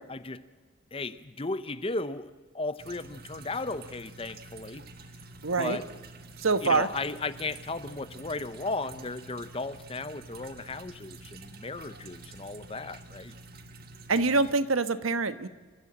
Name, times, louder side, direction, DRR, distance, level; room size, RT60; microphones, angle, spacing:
voice 1, 0.1-0.4 0.9-4.9 5.6-5.9 6.6-13.3, left 3 dB, 25° left, 14 dB, 0.7 m, -35 dB
sound 1, 2.8-14.5, right 3 dB, 45° right, 1.6 m, -48 dB
voice 2, 5.4-5.8 6.4-6.9 14.1-15.5, right 3 dB, 80° right, 12 dB, 1.2 m, -25 dB
27.5 x 15.0 x 8.7 m, 1.4 s
head